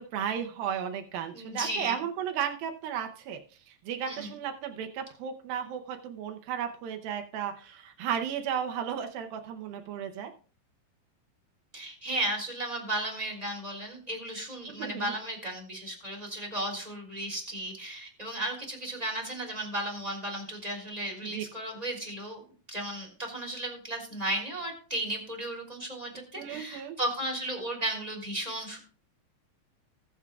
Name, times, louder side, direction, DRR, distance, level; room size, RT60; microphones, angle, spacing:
voice 1, 0.0-3.4 3.7-10.3 14.8-15.1 21.3-21.4 26.4-27.0, right 8 dB, 90° right, 5 dB, 2.0 m, -34 dB
voice 2, 1.3-2.0 4.0-4.3 11.7-22.4 22.7-28.8, right 1 dB, 10° right, 1 dB, 2.1 m, -35 dB
20.0 x 7.3 x 2.3 m, 0.40 s
omnidirectional pair, 5.4 m